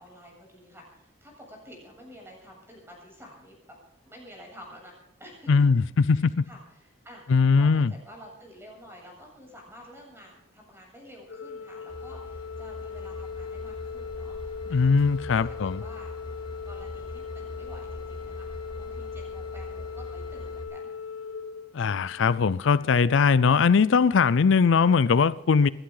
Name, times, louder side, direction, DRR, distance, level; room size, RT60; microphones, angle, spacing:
voice 1, 0.0-3.7 4.0-4.9 5.2-5.7 6.0-14.9 15.3-15.5 15.8-16.1 16.7-20.9, equal, 10° right, 7.8 m, -50 dB
voice 2, 5.5-6.5 7.3-7.9 14.7-15.8 21.7-25.7, left 5 dB, 70° left, 0.5 m, -20 dB
Organ, 11.3-22.4, left 6 dB, 85° left, 2.4 m, -39 dB
Train / Engine, 11.9-20.6, left 1 dB, 25° left, 2.7 m, -42 dB
28.0 x 11.5 x 3.9 m
head